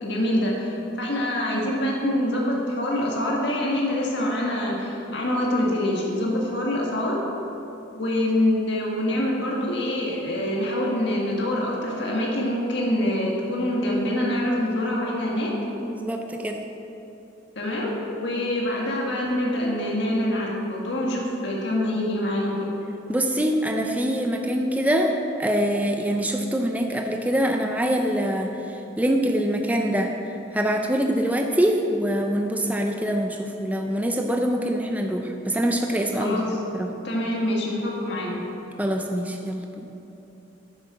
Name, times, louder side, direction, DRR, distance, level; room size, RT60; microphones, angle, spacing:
voice 1, 0.0-7.2 7.9-15.5 17.6-22.6 36.2-36.6 37.0-38.3, left 1 dB, 60° left, -2 dB, 1.7 m, -25 dB
voice 2, 15.8-16.6 23.1-25.1 25.4-28.5 29.0-30.1 30.5-36.9 38.8-39.9, equal, 10° right, 3 dB, 0.5 m, -24 dB
10.0 x 8.3 x 6.0 m, 3.0 s
head